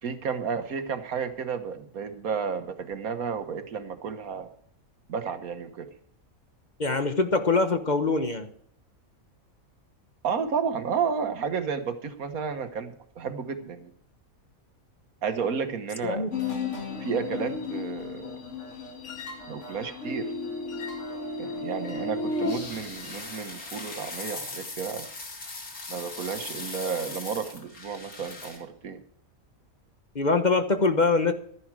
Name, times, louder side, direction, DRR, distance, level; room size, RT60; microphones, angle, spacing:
voice 1, 0.0-4.5 5.1-5.9 10.2-13.9 15.2-16.3 17.0-18.4 19.5-20.3 21.4-25.1 25.9-29.0, right 6 dB, 80° right, 9 dB, 1.7 m, -32 dB
voice 2, 6.8-8.5 16.0-16.3 30.1-31.3, left 3 dB, 35° left, 7 dB, 1.1 m, -23 dB
Vocalists in electroacoustic music, 16.3-23.2, left 3 dB, 55° left, 2.4 m, -33 dB
sound 1, 22.5-28.6, left 3 dB, 85° left, 3.1 m, -39 dB
13.0 x 11.0 x 4.8 m, 0.63 s
omnidirectional pair, 1.5 m